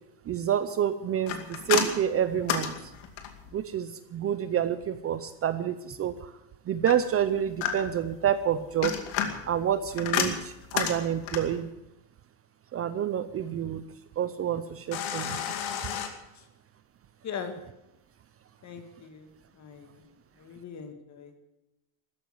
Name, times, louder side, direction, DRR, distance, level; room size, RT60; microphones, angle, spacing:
voice 1, 0.3-2.9 3.5-6.3 6.7-9.0 9.5-11.7 12.7-13.8 14.2-15.4, right 9 dB, 30° right, 12 dB, 0.6 m, -28 dB
sound 1, 1.3-3.5 6.9-8.1 8.6-11.6 14.9-16.1, left 8 dB, 65° left, 2.5 m, -31 dB
voice 2, 17.2-17.5 18.6-19.3 19.6-20.0 20.4-21.4, left 7 dB, 35° left, 7 dB, 2.0 m, -40 dB
14.0 x 12.0 x 7.8 m, 0.93 s
cardioid pair, 165°, 49 cm